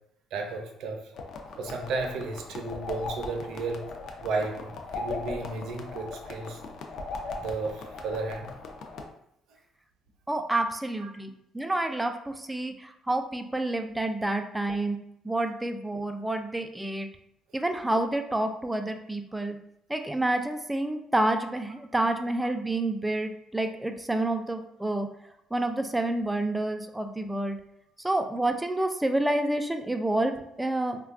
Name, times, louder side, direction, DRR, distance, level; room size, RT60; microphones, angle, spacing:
voice 1, 0.3-1.1 1.6-3.9 4.2-6.6 7.4-8.5 11.0-11.1, right 3 dB, 75° right, 3 dB, 0.5 m, -33 dB
sound 1, 1.1-9.0, left 3 dB, 65° left, 0.4 m, -38 dB
voice 2, 10.3-15.0 15.2-17.1 17.5-19.6 19.9-25.1 25.5-27.6 28.0-31.0, right 1 dB, 10° right, 6 dB, 0.3 m, -29 dB
3.3 x 2.2 x 2.4 m, 0.76 s
cardioid pair, 90°, 0 cm